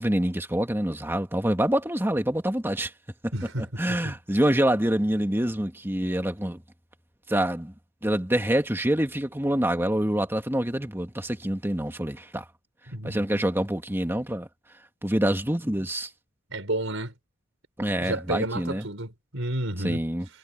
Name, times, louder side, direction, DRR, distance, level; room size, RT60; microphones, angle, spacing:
voice 1, 0.0-2.9 3.4-6.6 7.3-7.7 8.0-12.5 13.0-14.5 15.0-16.1 17.8-18.9 19.8-20.3, right 1 dB, 10° right, 1.9 m, -26 dB
voice 2, 3.3-4.1 12.9-13.5 16.5-17.1 18.0-20.1, right 1 dB, 70° right, 5.4 m, -31 dB
head